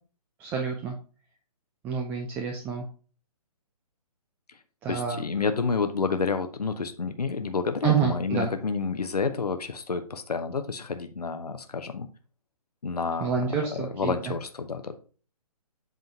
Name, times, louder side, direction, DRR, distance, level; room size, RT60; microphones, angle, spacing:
voice 1, 0.4-1.0 1.8-2.9 4.8-5.2 7.8-8.5 13.2-14.1, right 6 dB, 10° right, 3 dB, 0.4 m, -28 dB
voice 2, 4.9-12.1 12.8-13.4 13.7-15.0, left 5 dB, 80° left, 8 dB, 0.9 m, -29 dB
8.1 x 3.9 x 4.5 m, 0.38 s
figure-of-eight pair, 140°, 20 cm